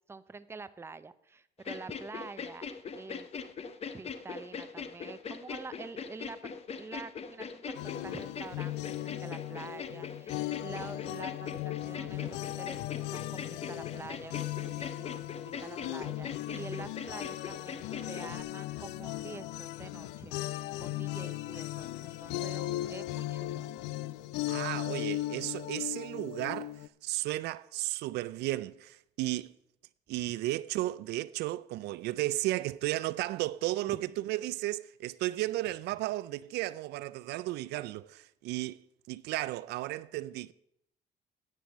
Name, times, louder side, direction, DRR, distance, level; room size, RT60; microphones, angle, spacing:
voice 1, 0.1-2.7 3.0-3.3 3.9-12.8 13.1-23.6 33.8-34.2, right 4 dB, 15° right, 0.5 m, -47 dB
sound 1, 1.6-18.4, left 6 dB, 35° left, 0.8 m, -42 dB
sound 2, 7.7-26.9, left 16 dB, 90° left, 0.4 m, -37 dB
voice 2, 24.5-26.7 27.0-29.5 30.1-38.8 39.1-40.5, right 17 dB, 80° right, 0.4 m, -34 dB
10.0 x 7.7 x 6.5 m
cardioid pair, 110°, 17 cm